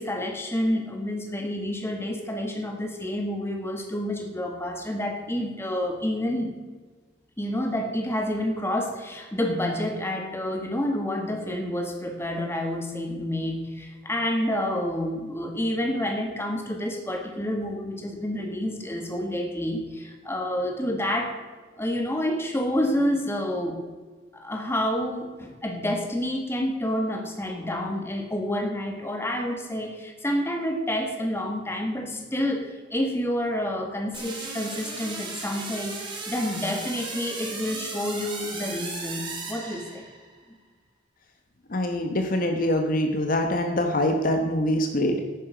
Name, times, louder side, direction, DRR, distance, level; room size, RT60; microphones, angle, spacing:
voice 1, 0.0-6.5 7.4-21.4 21.8-23.8 24.3-40.0, left 1 dB, 15° left, 3 dB, 1.6 m, -29 dB
sound 1, 34.1-40.3, right 3 dB, 25° right, 2.4 m, -36 dB
voice 2, 41.7-45.2, left 1 dB, 50° left, 5 dB, 1.1 m, -24 dB
11.0 x 9.4 x 5.1 m, 1.4 s
head